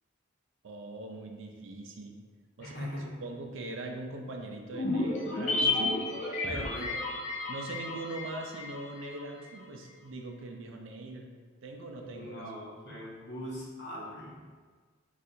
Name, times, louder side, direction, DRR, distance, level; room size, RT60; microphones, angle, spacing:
voice 1, 0.6-2.2 2.6-2.9 3.2-6.0 6.5-7.0 7.5-11.3 11.6-12.4, right 2 dB, 70° right, 2 dB, 0.4 m, -41 dB
voice 2, 2.6-3.2 6.5-6.9 12.1-14.5, equal, 55° left, -5 dB, 0.9 m, -41 dB
sound 1, 4.7-9.2 9.5-9.6, left 2 dB, 35° left, 0.5 m, -32 dB
4.2 x 2.4 x 2.6 m, 1.5 s
head